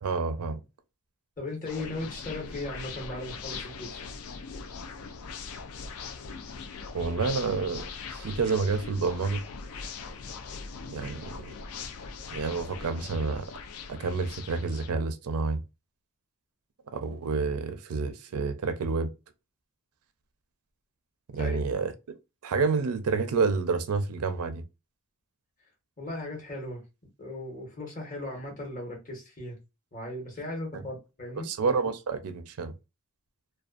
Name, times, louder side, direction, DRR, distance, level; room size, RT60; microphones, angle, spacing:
voice 1, 0.0-0.6 6.9-7.9 8.1-9.4 10.9-11.5 12.3-13.5 13.9-15.6 16.9-19.1 21.3-21.9 22.4-24.6 30.7-30.8 31.4-32.7, right 4 dB, 80° right, 0.5 m, -29 dB
voice 2, 1.4-4.0 21.3-21.6 26.0-26.8 27.2-29.6 29.9-31.5, left 1 dB, 35° left, 1.1 m, -37 dB
sound 1, 1.7-14.9, left 5 dB, 75° left, 0.4 m, -41 dB
2.5 x 2.2 x 2.4 m
head